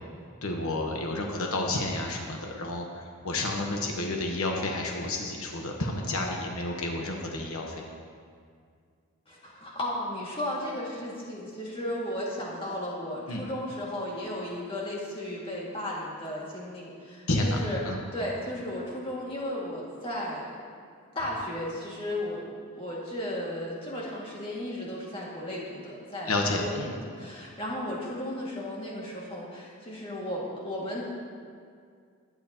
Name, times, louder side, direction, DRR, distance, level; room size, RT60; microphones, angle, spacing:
voice 1, 0.4-7.8 13.3-13.4 17.3-18.0 26.3-26.9, left 2 dB, 75° left, 0 dB, 1.2 m, -30 dB
voice 2, 9.3-17.8 18.1-20.5 21.2-31.1, left 1 dB, 25° left, -5 dB, 2.1 m, -35 dB
20.5 x 9.5 x 3.0 m, 2.2 s
head